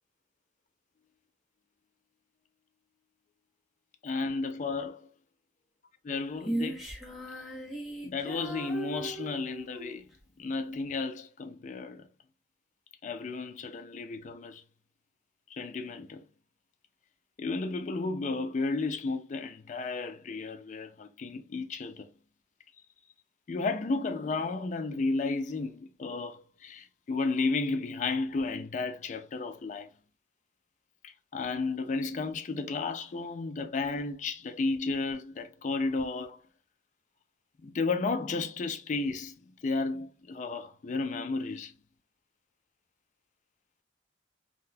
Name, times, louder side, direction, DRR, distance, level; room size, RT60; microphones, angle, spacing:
voice 1, 4.0-5.1 6.0-6.8 8.0-10.1 10.4-12.1 13.0-14.6 15.5-16.2 17.4-22.1 23.5-29.9 31.0-36.4 37.6-41.7, left 3 dB, 40° left, 0.3 m, -33 dB
Female singing, 6.4-9.9, right 1 dB, ahead, 0.7 m, -37 dB
3.8 x 2.2 x 2.6 m
head